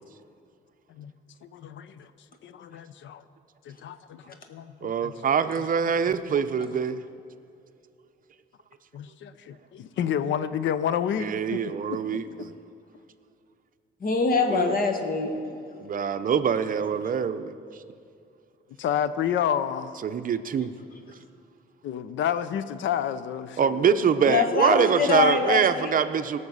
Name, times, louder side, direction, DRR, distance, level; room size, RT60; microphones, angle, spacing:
voice 1, 1.4-2.1 2.4-3.2 3.7-5.1 5.9-6.0 6.3-6.4 8.9-12.2 18.8-19.9 21.8-23.8, left 9 dB, 70° left, 14 dB, 0.6 m, -30 dB
voice 2, 4.8-7.0 11.2-12.5 14.5-14.7 15.8-17.5 20.0-20.7 23.6-26.4, right 7 dB, 45° right, 11 dB, 0.6 m, -24 dB
voice 3, 14.0-15.4 24.2-25.9, left 5 dB, 45° left, 5 dB, 1.4 m, -24 dB
18.0 x 6.6 x 5.5 m, 2.5 s
cardioid pair, 90°, 20 cm